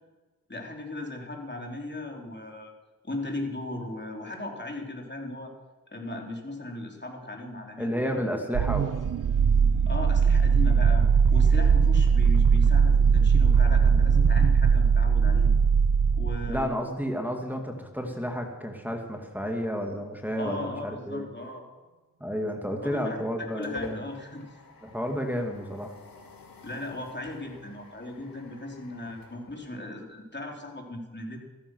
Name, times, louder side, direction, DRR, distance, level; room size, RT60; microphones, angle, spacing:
voice 1, 0.5-2.7 3.0-5.5 5.9-8.2 9.9-15.5 16.1-16.7 20.4-21.6 22.8-23.2 23.5-24.6 26.6-31.4, left 2 dB, 30° left, 1 dB, 3.6 m, -37 dB
voice 2, 7.8-9.0 16.5-21.3 22.2-24.0 24.8-25.9, equal, 5° right, 2 dB, 2.3 m, -31 dB
sound 1, 8.5-16.7, right 6 dB, 65° right, 0.5 m, -20 dB
sound 2, 23.2-30.3, left 3 dB, 75° left, 2.6 m, -48 dB
14.0 x 13.5 x 6.3 m, 1.3 s
cardioid pair, 40°, 35 cm